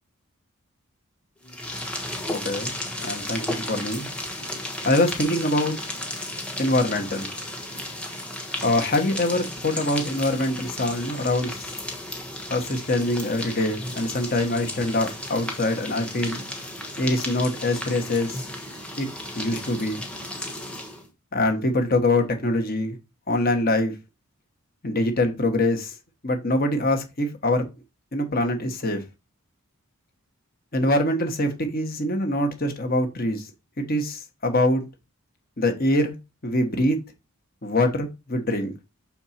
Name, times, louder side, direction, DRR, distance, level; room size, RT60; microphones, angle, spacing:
sound 1, 1.4-21.1, left 1 dB, 5° left, 1.2 m, -34 dB
voice 1, 2.3-4.1 4.8-5.8 6.6-7.3 8.6-11.7 12.5-16.4 17.0-18.4 19.0-19.1 19.3-20.0 21.3-23.0 23.3-23.9 24.8-25.9 26.2-27.6 28.1-29.0 30.7-33.4 33.8-34.8 35.6-36.1 36.4-37.0 37.6-38.7, left 1 dB, 40° left, 1.4 m, -24 dB
6.1 x 4.5 x 4.3 m
head